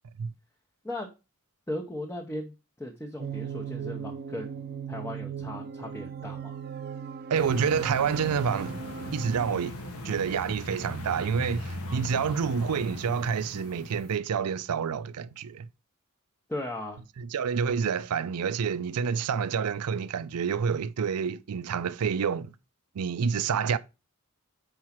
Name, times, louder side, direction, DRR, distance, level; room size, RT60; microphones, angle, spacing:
voice 1, 1.7-6.6 16.5-17.0, left 1 dB, 10° left, 0.8 m, -37 dB
sound 1, 3.2-9.5, right 7 dB, 45° right, 0.7 m, -38 dB
sound 2, 7.3-14.1, equal, 85° left, 1.4 m, -39 dB
voice 2, 7.3-8.8 9.1-9.8 10.0-15.7 17.2-22.5 22.9-23.8, right 6 dB, 85° right, 0.4 m, -28 dB
4.8 x 4.7 x 5.7 m
head